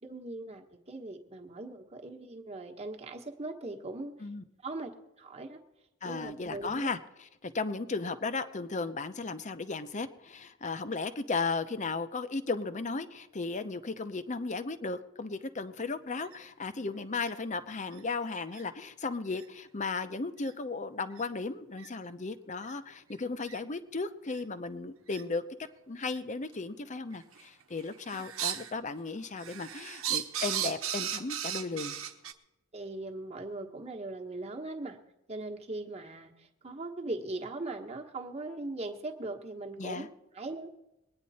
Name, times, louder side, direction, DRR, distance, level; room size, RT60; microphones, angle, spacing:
voice 1, 0.0-4.3 4.6-4.9 5.2-5.6 6.0-6.9 28.1-28.2 32.7-35.0 35.3-40.1 40.3-40.7, right 2 dB, 30° right, 2 dB, 1.3 m, -40 dB
voice 2, 6.0-25.4 25.9-32.0 39.8-40.1, left 3 dB, 35° left, 11 dB, 0.7 m, -35 dB
sound 1, 16.2-16.4 17.2-17.3 17.9-18.0 18.5-18.6 19.3-19.4 20.4-20.5 21.1-21.2 21.8-21.9 22.6-22.7 23.5-23.6 24.3-24.4 25.1-25.2 26.1-26.2 27.1-27.5 27.8-28.7 29.1-32.3, right 10 dB, 80° right, 1.1 m, -36 dB
21.5 x 9.7 x 4.2 m, 0.94 s
head